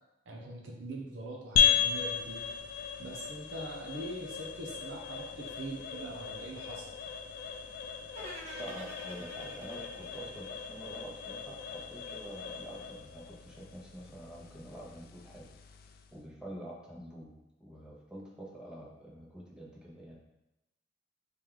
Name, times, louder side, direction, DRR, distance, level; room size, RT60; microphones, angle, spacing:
voice 1, 0.3-2.4 3.0-6.9, right 1 dB, 80° right, -1 dB, 0.6 m, -42 dB
sound 1, 1.6-16.2, left 8 dB, 55° left, 0.3 m, -35 dB
sound 2, 8.1-11.3, equal, 35° right, 0.8 m, -48 dB
voice 2, 8.5-15.5 16.1-20.2, right 1 dB, 5° right, -4 dB, 0.8 m, -47 dB
3.3 x 3.0 x 3.7 m, 0.96 s
head